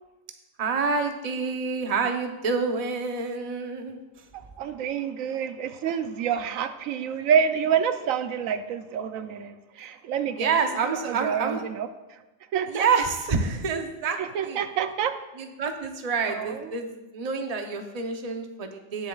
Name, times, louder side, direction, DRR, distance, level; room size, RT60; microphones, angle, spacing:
voice 1, 0.6-4.0 10.4-11.6 12.7-14.6 15.4-19.1, right 5 dB, 35° right, 5 dB, 0.8 m, -28 dB
voice 2, 4.6-10.5 11.0-11.9 12.5-12.8 14.2-15.1 16.3-16.7, right 8 dB, 80° right, 10 dB, 1.0 m, -27 dB
18.0 x 7.2 x 2.4 m, 1.1 s
omnidirectional pair, 1.4 m